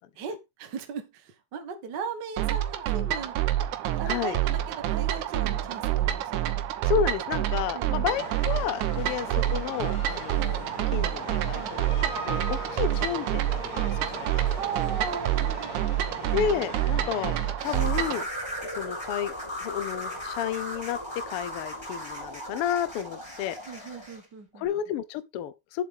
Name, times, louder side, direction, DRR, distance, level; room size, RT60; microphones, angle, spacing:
voice 1, 0.1-3.4 3.9-6.5 7.7-7.9 11.5-11.8 12.5-12.6 14.6-15.9 16.9-17.1 23.7-24.7, right 6 dB, 45° right, 1.5 m, -38 dB
sound 1, 2.4-18.2, right 12 dB, 75° right, 2.3 m, -28 dB
voice 2, 4.1-4.4 6.8-10.7 10.9-14.5 16.3-17.3 17.6-18.3 18.8-19.3 19.6-21.0 21.3-23.6 24.5-25.8, left 9 dB, 85° left, 1.2 m, -31 dB
sound 2, 8.1-17.5, left 3 dB, 60° left, 3.6 m, -40 dB
sound 3, 17.6-24.2, left 1 dB, 10° left, 3.4 m, -37 dB
8.7 x 7.4 x 3.6 m
omnidirectional pair, 3.5 m